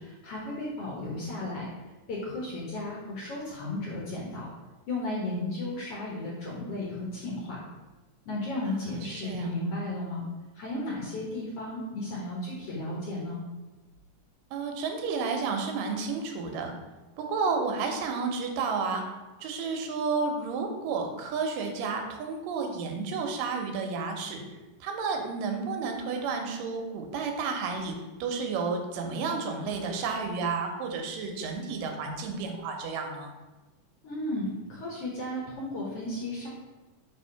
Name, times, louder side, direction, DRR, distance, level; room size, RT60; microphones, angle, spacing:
voice 1, 0.0-1.7 2.1-4.5 4.9-7.7 8.2-10.2 10.5-13.4 34.0-36.5, left 1 dB, 65° left, -4 dB, 1.5 m, -34 dB
voice 2, 8.6-9.6 14.5-16.7 17.2-19.0 19.4-24.4 24.8-28.0 28.2-33.3, right 4 dB, 80° right, 4 dB, 2.4 m, -31 dB
4.9 x 3.5 x 5.6 m, 1.2 s
omnidirectional pair, 3.9 m